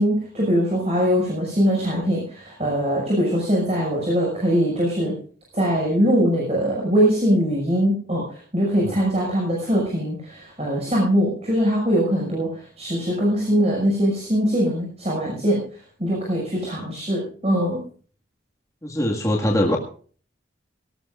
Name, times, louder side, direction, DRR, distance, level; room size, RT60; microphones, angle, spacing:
voice 1, 0.0-5.1 5.5-15.6 16.0-17.8, equal, 35° right, -3 dB, 6.0 m, -22 dB
voice 2, 18.8-19.8, left 1 dB, 15° left, -1 dB, 1.9 m, -22 dB
19.0 x 18.0 x 2.5 m, 0.43 s
head